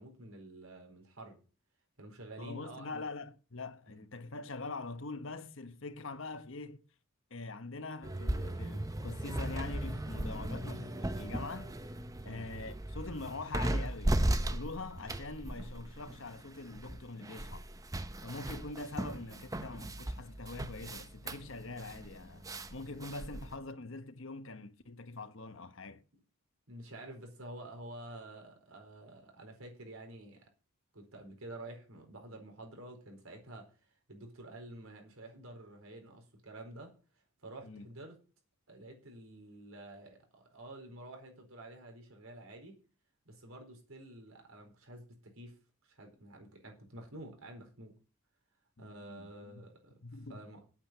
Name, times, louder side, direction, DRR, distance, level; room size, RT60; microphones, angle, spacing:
voice 1, 0.0-1.4 2.0-3.0 3.9-4.0 12.2-12.4 26.7-30.5 30.9-33.7 34.1-36.9 37.4-38.2 38.7-42.8 43.3-45.6 45.8-47.9 48.8-50.0 50.3-50.6, right 1 dB, 80° right, 4.4 m, -49 dB
voice 2, 2.4-6.8 7.3-11.7 12.2-17.7 18.2-26.0 37.6-37.9 48.8-49.7 50.0-50.4, left 3 dB, 65° left, 1.1 m, -44 dB
sound 1, 8.0-23.5, right 1 dB, 15° right, 0.7 m, -37 dB
8.6 x 8.5 x 7.6 m
head